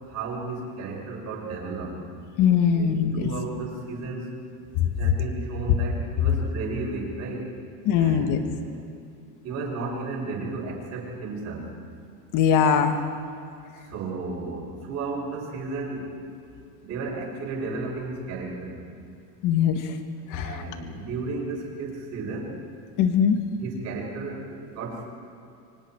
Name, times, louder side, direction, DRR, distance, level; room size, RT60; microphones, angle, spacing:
voice 1, 0.1-1.9 2.7-4.3 5.0-7.5 7.9-8.6 9.4-11.6 13.9-16.0 16.8-18.8 20.4-22.5 23.6-24.4 24.7-25.1, right 3 dB, 35° right, -3 dB, 7.2 m, -33 dB
voice 2, 2.4-3.2 7.9-8.4 12.3-13.0 19.4-19.9 20.3-20.6 23.0-23.4, left 8 dB, 40° left, 6 dB, 1.9 m, -21 dB
29.5 x 25.5 x 4.8 m, 2.5 s
supercardioid pair, 165°, 46 cm